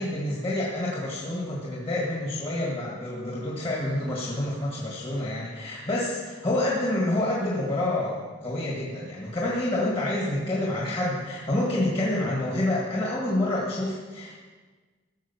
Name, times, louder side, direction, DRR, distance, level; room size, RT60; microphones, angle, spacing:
voice 1, 0.0-14.3, left 1 dB, 30° left, -5 dB, 1.8 m, -28 dB
15.0 x 6.3 x 7.0 m, 1.4 s
head